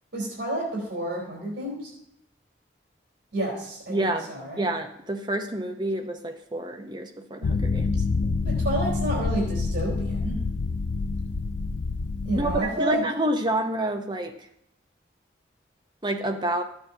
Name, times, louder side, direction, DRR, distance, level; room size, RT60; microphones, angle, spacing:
voice 1, 0.1-1.9 3.3-4.6 8.4-10.4 12.2-13.0, right 1 dB, 80° right, -3 dB, 3.4 m, -30 dB
voice 2, 3.9-4.3 4.6-8.0 12.3-14.3 16.0-16.6, right 1 dB, 25° right, 4 dB, 0.8 m, -28 dB
sound 1, 7.4-12.6, left 4 dB, 85° left, 0.5 m, -27 dB
13.0 x 8.8 x 2.8 m, 0.75 s
head